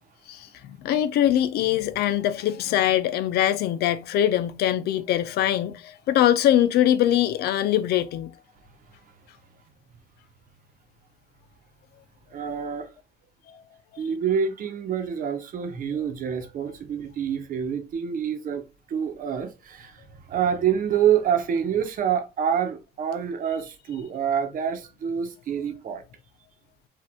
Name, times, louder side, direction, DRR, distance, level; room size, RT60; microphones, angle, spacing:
voice 1, 0.3-8.3 13.5-13.6, left 11 dB, 70° left, 0.5 m, -23 dB
voice 2, 12.3-12.9 14.0-18.6 18.9-20.0 20.3-26.0, right 8 dB, 55° right, 1.0 m, -27 dB
5.0 x 2.6 x 3.5 m
cardioid pair, 110°, 17 cm